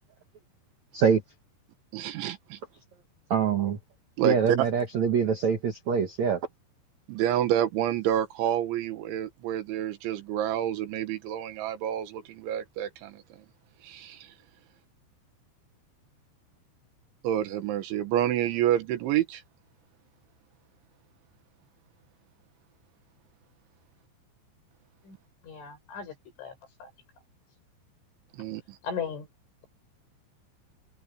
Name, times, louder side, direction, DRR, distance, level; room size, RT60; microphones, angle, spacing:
voice 1, 1.9-2.6 4.2-4.7 7.1-13.2 13.8-14.3 17.2-19.4 28.4-28.6, right 11 dB, 75° right, 3.8 m, -28 dB
voice 2, 3.3-3.8 4.2-6.4, right 6 dB, 55° right, 2.1 m, -24 dB
voice 3, 25.4-26.5 26.8-26.9 28.8-29.3, left 6 dB, 80° left, 8.8 m, -36 dB
omnidirectional pair, 5.5 m